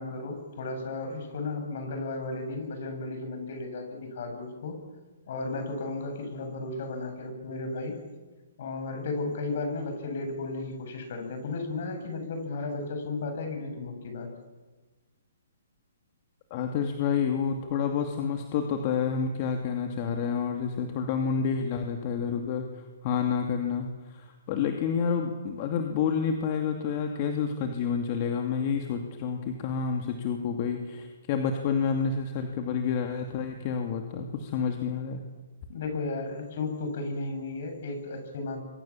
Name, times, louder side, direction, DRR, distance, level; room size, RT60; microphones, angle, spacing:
voice 1, 0.0-4.8 5.3-8.0 8.6-14.3 35.7-38.6, left 3 dB, 55° left, 5 dB, 7.5 m, -34 dB
voice 2, 16.5-35.2, left 6 dB, 40° left, 4 dB, 2.4 m, -29 dB
26.5 x 23.5 x 7.4 m, 1.2 s
hypercardioid pair, 150°, 0 cm